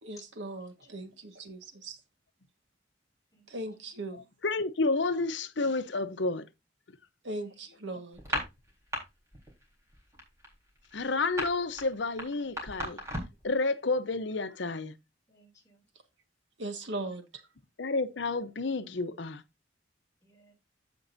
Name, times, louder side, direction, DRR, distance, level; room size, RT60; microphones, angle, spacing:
voice 1, 0.0-2.0 3.5-4.2 7.2-8.2 16.6-17.4, right 2 dB, 80° right, 1.6 m, -39 dB
voice 2, 4.4-6.5 10.9-13.0 13.4-14.9 17.8-19.4, left 3 dB, 75° left, 0.8 m, -30 dB
sound 1, 8.1-9.0 9.3-9.6 9.9-13.5, equal, 15° right, 4.0 m, -35 dB
voice 3, 15.3-15.8 20.2-20.5, left 2 dB, 20° left, 3.0 m, -59 dB
15.0 x 5.3 x 2.7 m
head